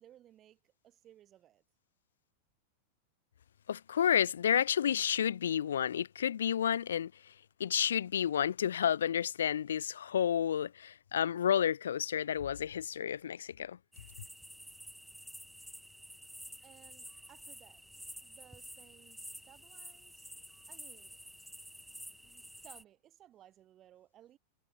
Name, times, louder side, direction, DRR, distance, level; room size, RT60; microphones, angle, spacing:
voice 1, 0.0-1.6 16.6-17.8 18.2-21.2 22.2-24.4, right 12 dB, 30° right, 5.3 m, -60 dB
voice 2, 3.7-7.1 7.6-13.8, left 9 dB, 65° left, 0.4 m, -30 dB
sound 1, 13.9-22.8, equal, ahead, 1.0 m, -50 dB
figure-of-eight pair, 90°, 0 cm